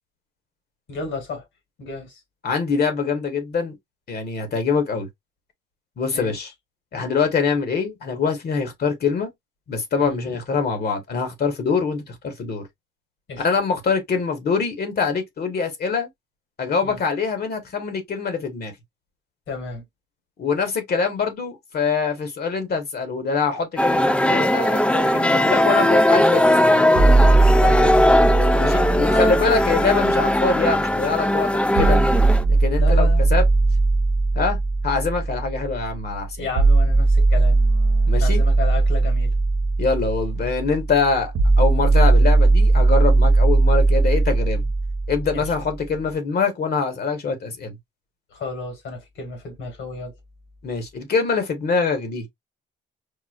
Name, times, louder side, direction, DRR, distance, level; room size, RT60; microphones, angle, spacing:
voice 1, 0.9-1.4 1.8-2.2 6.1-6.5 10.0-10.2 13.3-13.5 16.8-17.0 19.5-19.8 27.5-28.4 32.8-33.2 36.4-37.6 38.2-39.4 45.3-45.5 48.3-50.1, left 4 dB, 80° left, 1.9 m, -32 dB
voice 2, 2.4-3.7 4.1-5.1 6.0-6.5 6.9-9.3 9.7-12.6 13.4-16.1 16.6-18.7 20.4-26.8 28.6-32.0 32.6-33.1 33.3-33.4 34.3-34.6 34.8-36.5 38.1-38.4 39.8-44.7 45.1-47.7 50.6-52.3, left 5 dB, 50° left, 1.1 m, -24 dB
sound 1, 23.8-32.4, left 1 dB, 5° left, 0.3 m, -18 dB
sound 2, 27.0-31.0 31.8-45.8, right 3 dB, 65° right, 0.8 m, -19 dB
4.8 x 2.0 x 2.3 m
cardioid pair, 90°, 20 cm